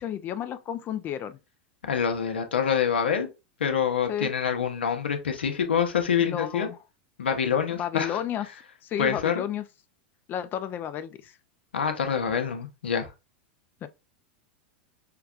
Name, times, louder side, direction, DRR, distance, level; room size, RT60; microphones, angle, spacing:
voice 1, 0.0-1.4 4.1-4.3 6.2-6.8 7.8-8.5 8.8-9.6 10.3-11.4 13.8-13.9, left 10 dB, 35° left, 0.4 m, -32 dB
voice 2, 1.8-3.3 3.6-6.7 7.2-8.2 9.0-9.4 11.7-13.1, left 7 dB, 85° left, 0.8 m, -26 dB
5.7 x 2.2 x 2.4 m
hypercardioid pair, 100°, 6 cm